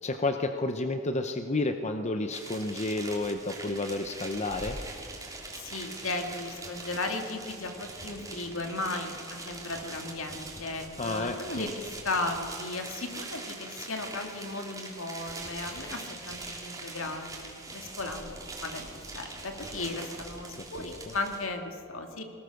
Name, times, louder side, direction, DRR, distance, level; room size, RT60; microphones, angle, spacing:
voice 1, 0.0-4.8 11.0-11.7 20.5-21.1, left 2 dB, 35° left, 7 dB, 0.8 m, -31 dB
sound 1, 2.3-21.4, right 2 dB, 15° right, 3.2 m, -42 dB
voice 2, 5.5-9.1 9.5-22.2, left 2 dB, 75° left, 4 dB, 2.3 m, -36 dB
22.5 x 19.5 x 6.5 m, 2.6 s
head